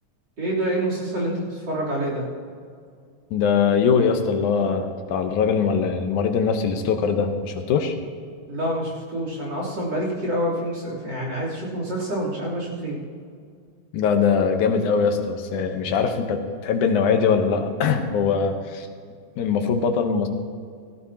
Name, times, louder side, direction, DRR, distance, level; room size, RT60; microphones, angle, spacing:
voice 1, 0.4-2.2 8.5-13.0, right 1 dB, 35° right, -5 dB, 4.0 m, -27 dB
voice 2, 3.3-8.0 13.9-18.9 19.4-20.3, left 6 dB, 85° left, 5 dB, 2.6 m, -22 dB
18.0 x 15.5 x 2.9 m, 2.2 s
omnidirectional pair, 3.5 m